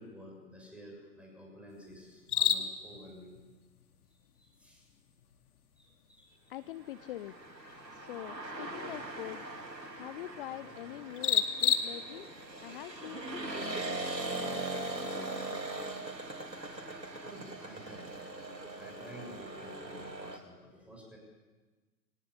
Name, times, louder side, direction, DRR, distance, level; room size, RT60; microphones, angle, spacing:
voice 1, 0.0-3.3 4.4-4.8 5.8-6.3 17.1-18.1 18.7-21.2, equal, ahead, -1 dB, 6.9 m, -51 dB
sound 1, 1.7-20.3, left 8 dB, 60° left, 2.3 m, -39 dB
voice 2, 6.5-7.4 7.9-9.4 9.9-12.3 12.6-14.0 14.3-15.6, left 14 dB, 35° left, 14 dB, 0.7 m, -45 dB
Auto Rickshaw - Approach Stop, 6.9-20.4, right 2 dB, 85° right, 3.6 m, -41 dB
sound 2, 12.8-16.3, right 1 dB, 35° right, 5.0 m, -54 dB
24.0 x 19.0 x 8.4 m, 1.3 s
figure-of-eight pair, 115°, 50 cm